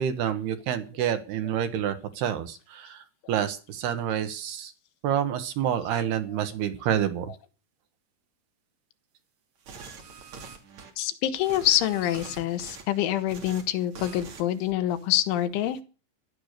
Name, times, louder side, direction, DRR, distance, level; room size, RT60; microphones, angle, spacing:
voice 1, 0.0-4.7 5.0-7.3, right 9 dB, 65° right, 10 dB, 3.1 m, -28 dB
sound 1, 9.6-10.9 11.3-12.8 13.2-13.6 13.9-14.4 14.7-14.9, right 5 dB, 40° right, 3.4 m, -44 dB
voice 2, 11.0-15.8, left 13 dB, 85° left, 11 dB, 3.7 m, -26 dB
16.0 x 12.0 x 6.6 m, 0.35 s
omnidirectional pair, 5.4 m